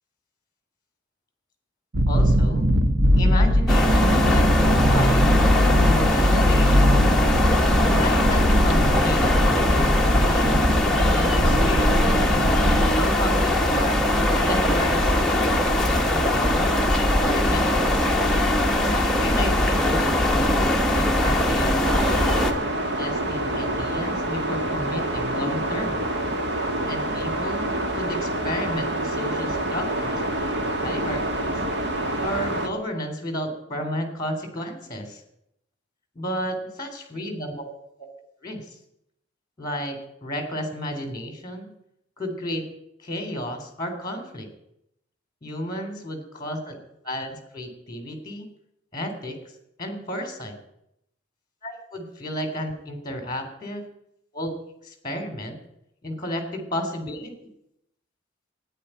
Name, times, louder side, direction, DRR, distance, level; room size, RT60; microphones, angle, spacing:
sound 1, 1.9-13.0, equal, 80° right, 1.4 m, -21 dB
voice 1, 2.1-2.7 3.2-5.3 5.8-7.0 7.9-10.8 11.1-12.2 13.0-14.0 14.3-15.7 16.1-17.0 17.2-18.0 18.8-22.0 23.0-26.0 26.9-27.7 27.9-30.2 30.8-31.6 32.2-35.2 36.1-37.7 38.0-38.1 38.4-38.6 39.6-41.7 42.2-42.6 43.0-44.5 45.4-46.8 47.0-48.5 48.9-49.4 49.8-50.6 51.6-53.8 54.3-54.5 54.8-55.6 56.0-57.3, equal, 20° left, 6 dB, 3.4 m, -32 dB
sound 2, 3.7-22.5, left 1 dB, ahead, 1.5 m, -21 dB
sound 3, 21.8-32.7, right 1 dB, 60° right, 1.8 m, -27 dB
13.5 x 9.9 x 9.1 m, 0.77 s
head